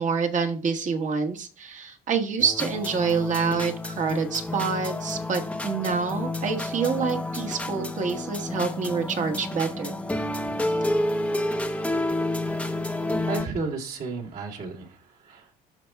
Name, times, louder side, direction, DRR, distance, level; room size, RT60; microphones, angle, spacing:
voice 1, 0.0-9.9, right 5 dB, 50° right, 3 dB, 1.4 m, -27 dB
sound 1, 2.4-13.4, left 1 dB, 5° left, 0.8 m, -29 dB
voice 2, 13.3-15.5, right 4 dB, 65° right, -1 dB, 2.5 m, -33 dB
12.5 x 4.4 x 2.3 m, 0.40 s
cardioid pair, 110°, 17 cm